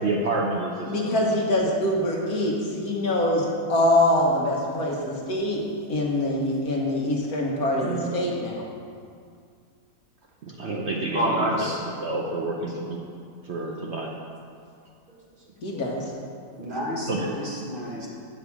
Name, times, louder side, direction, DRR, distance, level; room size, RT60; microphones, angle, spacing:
voice 1, 0.0-1.3 7.8-8.1 10.4-13.0 13.4-14.1 17.1-17.3 17.9-18.0, right 2 dB, 55° right, -1 dB, 0.9 m, -29 dB
voice 2, 0.9-5.6 5.9-8.6 15.6-16.0, left 1 dB, 75° left, -2 dB, 1.8 m, -24 dB
voice 3, 11.1-11.8 16.6-18.1, equal, 35° right, -4 dB, 1.7 m, -28 dB
8.0 x 5.0 x 7.3 m, 2.3 s
omnidirectional pair, 1.6 m